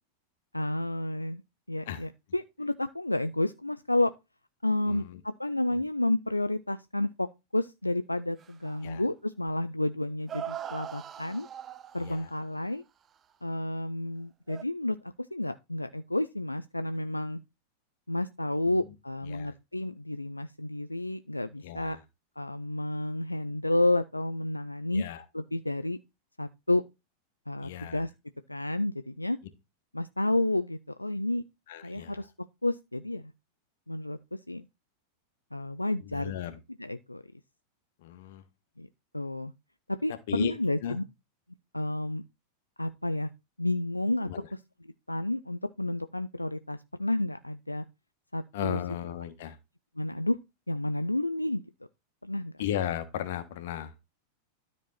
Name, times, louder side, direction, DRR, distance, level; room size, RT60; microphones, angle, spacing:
voice 1, 0.5-1.4 1.7-4.1 4.6-7.3 7.5-11.5 11.9-12.8 13.4-15.0 15.3-17.4 18.1-22.0 22.4-25.0 25.3-26.0 26.4-26.8 27.5-28.1 28.5-29.4 29.9-31.4 31.8-32.3 32.6-33.3 33.9-34.2 34.5-34.7 35.5-36.3 36.8-37.2 38.8-38.9 39.1-39.5 40.0-41.0 41.7-42.2 42.8-43.3 43.6-44.3 45.1-47.8 48.3-48.8 50.0-50.4 50.7-51.6 52.2-52.5, left 1 dB, 85° left, 0.4 m, -30 dB
voice 2, 4.8-5.2 5.7-5.8 8.8-9.0 12.0-12.3 18.7-18.9 19.2-19.5 21.6-22.0 24.9-25.2 27.6-28.0 31.7-32.3 36.0-36.6 38.0-38.4 40.3-40.5 40.8-41.0 44.2-44.5 48.5-49.6 52.6-53.9, left 11 dB, 55° left, 1.4 m, -36 dB
sound 1, 8.4-8.9 9.5-9.6 10.3-12.4 14.5-14.6, right 9 dB, 25° right, 0.6 m, -41 dB
12.5 x 4.6 x 4.1 m
figure-of-eight pair, 90°, 0 cm